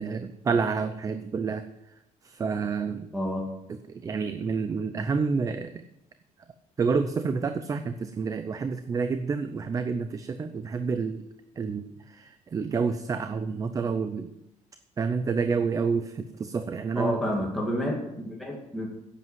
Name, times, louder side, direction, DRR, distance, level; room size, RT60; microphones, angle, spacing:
voice 1, 0.0-1.6 2.2-3.1 4.0-5.7 6.8-11.2 11.6-14.3 15.0-17.2, right 5 dB, 25° right, 9 dB, 0.6 m, -28 dB
voice 2, 3.1-3.5 16.9-18.9, equal, ahead, -3 dB, 2.2 m, -29 dB
11.0 x 8.4 x 7.5 m, 0.85 s
cardioid pair, 160°, 13 cm